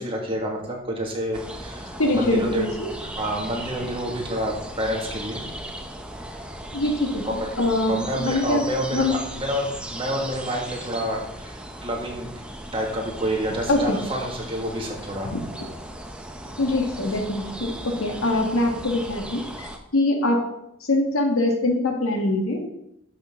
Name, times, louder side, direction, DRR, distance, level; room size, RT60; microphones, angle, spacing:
voice 1, 0.0-2.6 3.2-5.4 7.2-7.5 7.9-12.3 12.7-15.3, equal, 25° right, -1 dB, 1.9 m, -28 dB
sound 1, 1.3-19.8, right 1 dB, 5° right, 0.7 m, -37 dB
voice 2, 2.0-2.9 6.7-7.3 7.6-9.1 13.7-14.0 15.3-15.4 16.6-20.4 20.8-22.7, left 2 dB, 90° left, 3 dB, 1.5 m, -23 dB
11.5 x 6.5 x 3.7 m, 0.82 s
head